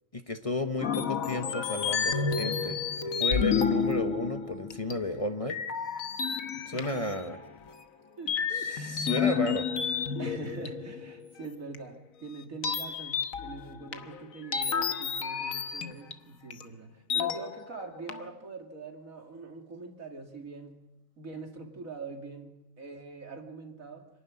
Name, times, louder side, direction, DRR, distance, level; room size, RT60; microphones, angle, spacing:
voice 1, 0.1-2.8 3.2-5.6 6.7-7.4 8.5-9.7, left 1 dB, 25° left, 7 dB, 1.0 m, -33 dB
sound 1, 0.8-5.2 5.5-7.7 8.3-11.3 11.7-11.8 12.6-16.1 16.5-16.6 17.1-17.8 18.1-18.2, left 6 dB, 85° left, 1.6 m, -31 dB
voice 2, 6.7-7.1 8.2-9.1 10.2-20.8 21.2-24.1, right 3 dB, 85° right, 3 dB, 2.9 m, -43 dB
26.0 x 12.5 x 9.7 m, 0.95 s
omnidirectional pair, 1.4 m